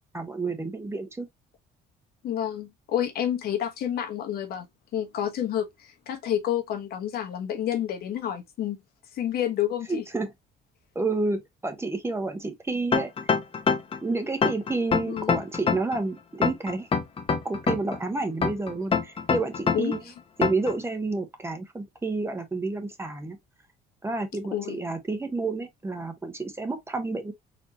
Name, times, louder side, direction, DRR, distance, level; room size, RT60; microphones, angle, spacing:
voice 1, 0.1-1.3 9.9-10.3 10.9-13.4 14.0-16.9 17.4-20.0 20.4-23.4 24.0-27.3, right 3 dB, 15° right, 0.9 m, -30 dB
voice 2, 2.2-4.7 4.9-8.8 9.1-10.0 15.0-15.4 19.7-19.9 24.5-24.8, left 10 dB, 65° left, 1.1 m, -29 dB
sound 1, 12.9-14.0 14.4-16.0 16.4-18.0 18.4-20.0 20.4-20.7, left 6 dB, 35° left, 0.8 m, -24 dB
4.2 x 2.8 x 2.8 m
cardioid pair, 110°, 17 cm